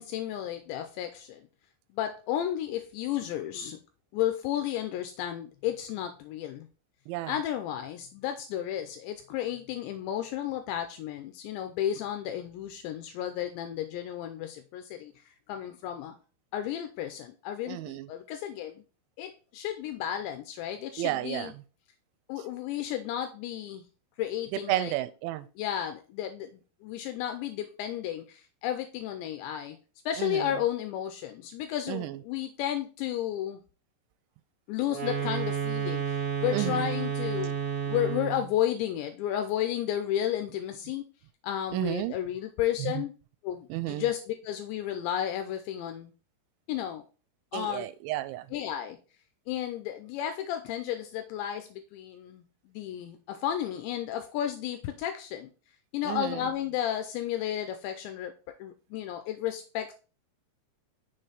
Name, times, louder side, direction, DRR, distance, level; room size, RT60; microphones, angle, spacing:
voice 1, 0.0-1.5 1.9-3.8 4.1-6.7 7.3-16.2 16.5-18.8 19.2-21.5 22.3-23.8 24.2-24.9 25.6-29.8 30.1-33.6 34.7-37.5 37.9-41.1 41.4-43.1 43.4-46.1 46.7-47.1 47.5-47.9 48.5-49.0 49.5-55.5 55.9-59.9, left 11 dB, 85° left, 7 dB, 2.8 m, -33 dB
voice 2, 17.7-18.1 21.0-21.5 24.5-25.5 30.2-30.5 31.9-32.2 36.5-36.8 41.7-42.1 42.8-43.0 43.7-44.1 47.5-48.5 56.0-56.4, right 16 dB, 85° right, 14 dB, 2.9 m, -32 dB
sound 1, 34.9-38.5, right 8 dB, 35° right, 1.7 m, -31 dB
6.5 x 4.4 x 4.8 m, 0.35 s
omnidirectional pair, 5.3 m